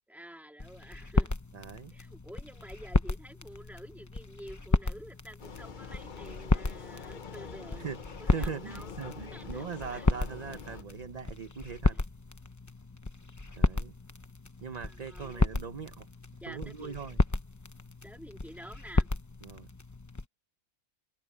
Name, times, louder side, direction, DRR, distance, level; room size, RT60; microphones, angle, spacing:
voice 1, 0.1-1.3 1.9-7.9 8.2-10.1 11.9-12.0 14.7-15.6 16.4-17.0 18.0-19.1, equal, ahead, 2.1 m, -49 dB
sound 1, 0.6-20.3, left 2 dB, 15° left, 0.7 m, -33 dB
voice 2, 1.5-1.9 7.7-12.0 13.6-13.9 14.6-16.1 16.5-17.2 19.4-19.7, right 6 dB, 40° right, 0.7 m, -40 dB
Vehicle, 5.4-10.8, left 5 dB, 40° left, 0.9 m, -45 dB
omnidirectional pair, 1.4 m